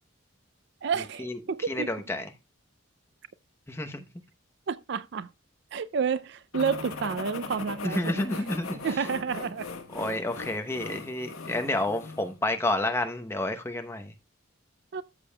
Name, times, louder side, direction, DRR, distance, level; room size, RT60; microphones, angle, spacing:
voice 1, 0.8-1.9 4.7-5.3 5.7-8.2 8.8-9.7 14.9-15.0, right 6 dB, 55° right, 0.4 m, -30 dB
voice 2, 1.7-2.3 3.7-4.0 7.8-9.0 9.9-14.1, left 1 dB, 10° left, 0.8 m, -30 dB
sound 1, 6.5-12.4, left 4 dB, 85° left, 1.6 m, -39 dB
14.0 x 6.9 x 2.2 m
head